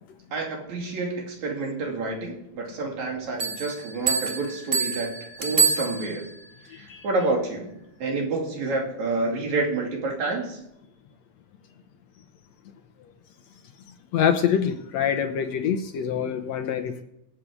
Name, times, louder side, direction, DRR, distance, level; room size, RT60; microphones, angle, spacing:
voice 1, 0.3-5.1 5.4-6.2 6.7-7.7 8.0-10.6, right 3 dB, 65° right, 1 dB, 3.8 m, -28 dB
sound 1, 3.4-6.4, right 5 dB, 85° right, 0.5 m, -26 dB
voice 2, 14.1-17.0, left 8 dB, 65° left, 7 dB, 2.0 m, -25 dB
21.0 x 8.6 x 4.7 m, 0.85 s
omnidirectional pair, 3.5 m